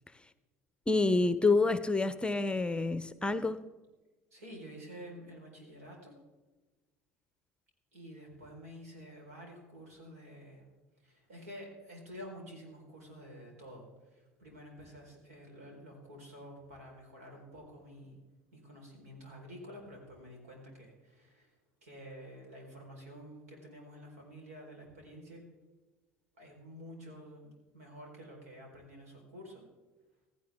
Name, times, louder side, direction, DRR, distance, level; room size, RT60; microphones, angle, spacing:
voice 1, 0.9-3.6, left 3 dB, 15° left, 13 dB, 0.8 m, -28 dB
voice 2, 4.3-6.1 7.9-10.6 11.0-18.2 18.5-21.5 21.8-25.4 26.4-29.7, equal, 80° right, 0 dB, 4.5 m, -50 dB
16.5 x 15.0 x 3.6 m, 1.2 s
hypercardioid pair, 70°, 8 cm